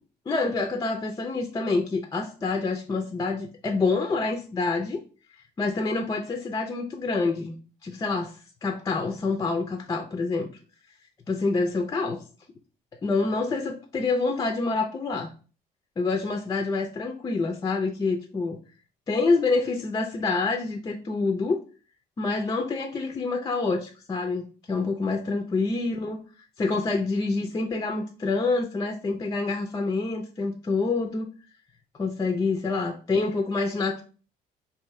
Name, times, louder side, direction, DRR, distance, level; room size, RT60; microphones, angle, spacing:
voice 1, 0.3-5.0 5.6-7.6 7.8-8.3 8.6-10.5 11.3-12.2 13.0-15.3 16.0-18.6 19.1-21.6 22.2-26.2 26.6-31.3 32.0-34.0, left 3 dB, 20° left, 3 dB, 0.4 m, -27 dB
3.0 x 2.6 x 3.6 m, 0.37 s
cardioid pair, 110°, 17 cm